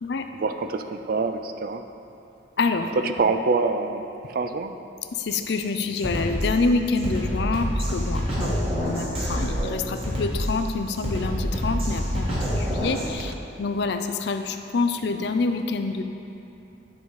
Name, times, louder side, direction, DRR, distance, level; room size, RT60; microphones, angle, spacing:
voice 1, 0.3-1.8 3.0-4.0 4.3-4.7 13.3-13.4, right 4 dB, 50° right, 8 dB, 0.3 m, -25 dB
voice 2, 2.6-3.3 5.1-16.0, left 3 dB, 60° left, 7 dB, 0.4 m, -27 dB
Drum kit, 5.3-5.5 6.0-13.1, equal, 30° right, 1.5 m, -27 dB
9.6 x 4.0 x 4.6 m, 2.9 s
head